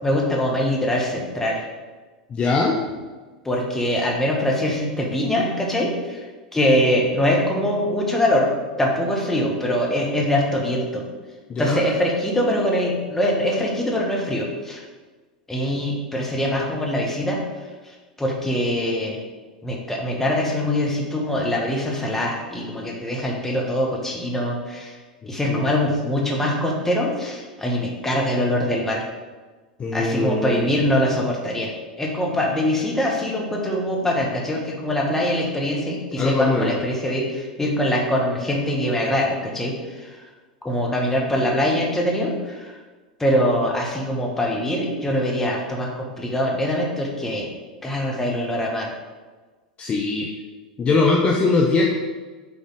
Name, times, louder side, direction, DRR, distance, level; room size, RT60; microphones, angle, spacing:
voice 1, 0.0-1.7 3.4-6.3 6.5-8.5 8.8-11.0 11.6-14.8 15.5-19.2 19.6-25.0 25.3-29.0 29.9-31.7 32.0-40.2 40.6-42.8 43.2-47.5 47.8-48.9, left 1 dB, 10° left, -2 dB, 1.5 m, -23 dB
voice 2, 2.3-2.8 11.5-11.8 25.2-25.6 29.8-30.8 36.2-36.8 49.8-50.3 50.8-51.9, left 3 dB, 25° left, -1 dB, 0.8 m, -21 dB
7.0 x 3.9 x 5.0 m, 1.3 s
figure-of-eight pair, 90°, 4 cm